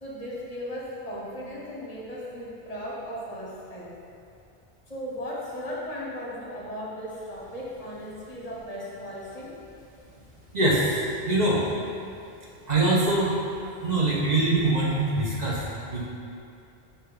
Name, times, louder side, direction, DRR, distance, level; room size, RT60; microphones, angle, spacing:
voice 1, 0.0-3.9 4.9-9.6, equal, 40° left, -5 dB, 0.9 m, -36 dB
voice 2, 10.5-11.7 12.7-13.3 13.8-16.1, right 2 dB, 45° right, -6 dB, 1.0 m, -23 dB
8.8 x 2.9 x 3.9 m, 2.5 s
omnidirectional pair, 1.1 m